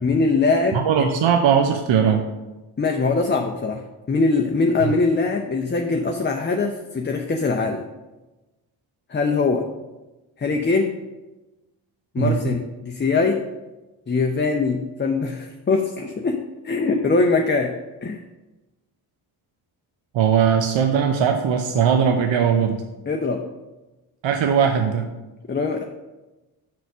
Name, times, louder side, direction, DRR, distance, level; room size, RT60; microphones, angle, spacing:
voice 1, 0.0-1.1 2.8-7.8 9.1-9.6 10.4-10.9 12.1-13.4 14.1-16.4 16.6-17.7 18.0-18.2 23.1-23.4 25.5-25.8, left 3 dB, 20° left, 3 dB, 0.6 m, -22 dB
voice 2, 0.7-2.2 4.8-4.9 12.2-12.4 20.1-22.8 24.2-25.1, right 7 dB, 65° right, 5 dB, 0.7 m, -19 dB
6.3 x 4.0 x 5.5 m, 1.1 s
supercardioid pair, 40°, 50 cm